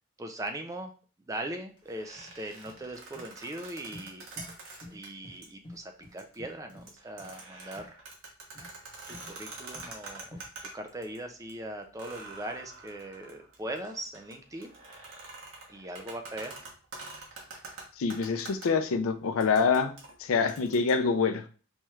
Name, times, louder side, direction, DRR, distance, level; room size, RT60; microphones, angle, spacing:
voice 1, 0.2-0.9 1.3-4.3 4.9-8.0 9.1-10.4 10.7-14.7 15.7-16.6, right 1 dB, 15° right, 5 dB, 0.3 m, -40 dB
sound 1, 1.7-1.8 2.1-2.4 2.6-2.9 3.1-3.3 3.9-4.1 4.4-4.5 4.8-5.0 5.2-5.4 5.6-6.9 7.2-7.3 7.7-7.9 8.5-8.7 9.1-9.3 9.7-9.9 10.3-10.5, left 1 dB, 25° left, 1.2 m, -48 dB
sound 2, 1.8-5.1 5.4-5.5 6.0-6.4 6.7-11.2 11.5-11.6 12.0-18.7 19.4-20.9, right 3 dB, 70° right, 1.0 m, -46 dB
voice 2, 18.0-19.9 20.2-21.4, left 5 dB, 90° left, 9 dB, 0.4 m, -26 dB
4.3 x 3.1 x 2.3 m, 0.39 s
head